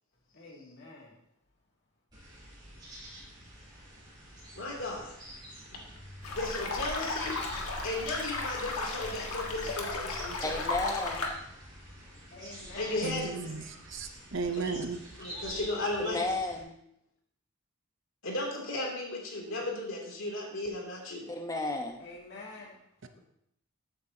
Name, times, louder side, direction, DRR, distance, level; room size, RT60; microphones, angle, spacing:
voice 1, 0.3-1.2 12.3-13.1 22.0-22.8, left 2 dB, 50° left, 2.4 m, -47 dB
sound 1, 2.1-16.6, equal, 20° right, 4.5 m, -47 dB
voice 2, 4.5-5.1 6.3-10.6 12.8-13.3 15.2-16.2 18.2-21.3, left 2 dB, 65° left, 2.9 m, -35 dB
sound 2, 6.2-11.3, left 3 dB, 80° left, 1.7 m, -35 dB
voice 3, 10.4-11.3 16.0-16.7 21.3-22.0, left 2 dB, 15° left, 0.9 m, -33 dB
voice 4, 13.0-13.7 13.9-15.0, right 4 dB, 60° right, 0.8 m, -34 dB
14.5 x 8.6 x 2.8 m
head